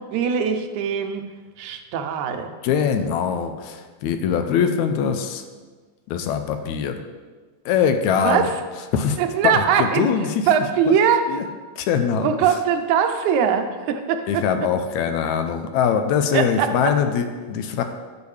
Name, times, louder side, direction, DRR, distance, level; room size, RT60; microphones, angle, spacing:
voice 1, 0.1-1.2 1.6-2.5 8.2-8.5 9.2-11.3 12.2-14.4 16.3-16.9, right 7 dB, 80° right, 7 dB, 2.0 m, -21 dB
voice 2, 2.6-5.4 6.1-7.0 7.7-8.5 8.9-9.2 9.4-10.5 10.9-11.0 11.3-11.4 11.8-12.3 14.3-17.8, left 7 dB, 80° left, 7 dB, 1.9 m, -22 dB
12.0 x 7.0 x 3.2 m, 1.4 s
omnidirectional pair, 3.4 m